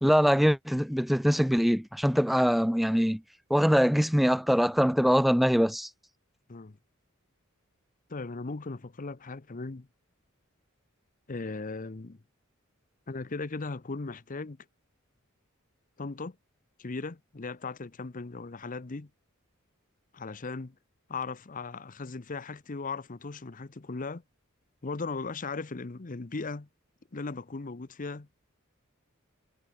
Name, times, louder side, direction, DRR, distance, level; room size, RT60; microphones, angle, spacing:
voice 1, 0.0-3.2 3.5-5.9, equal, ahead, 0.3 m, -23 dB
voice 2, 8.1-9.9 11.3-12.2 13.1-14.7 16.0-16.4 16.8-19.1 20.1-20.7 21.1-24.2 24.8-26.7 27.1-28.3, left 3 dB, 40° left, 0.8 m, -37 dB
head